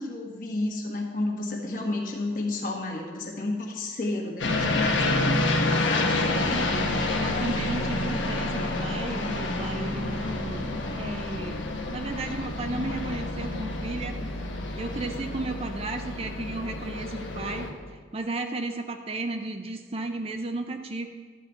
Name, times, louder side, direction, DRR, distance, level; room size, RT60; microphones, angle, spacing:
voice 1, 0.0-6.5, left 2 dB, 45° left, 0 dB, 1.4 m, -31 dB
sound 1, 4.4-17.7, left 2 dB, 90° left, 1.2 m, -28 dB
voice 2, 6.3-10.7 11.0-14.2 14.8-17.7 18.1-21.1, right 2 dB, 30° right, 6 dB, 0.5 m, -34 dB
12.0 x 4.1 x 8.1 m, 1.5 s
head